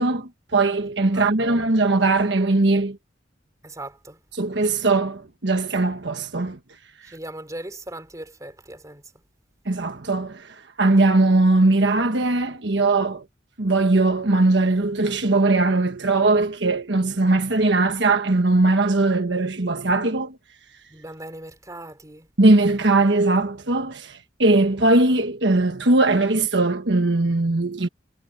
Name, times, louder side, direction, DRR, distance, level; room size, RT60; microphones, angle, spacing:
voice 1, 0.0-3.0 4.4-6.6 9.6-13.2 13.6-20.4 22.4-27.9, right 2 dB, 65° right, 1.4 m, -20 dB
voice 2, 1.1-1.7 3.6-4.2 7.0-9.0 20.9-22.3, right 1 dB, 20° right, 3.4 m, -39 dB
head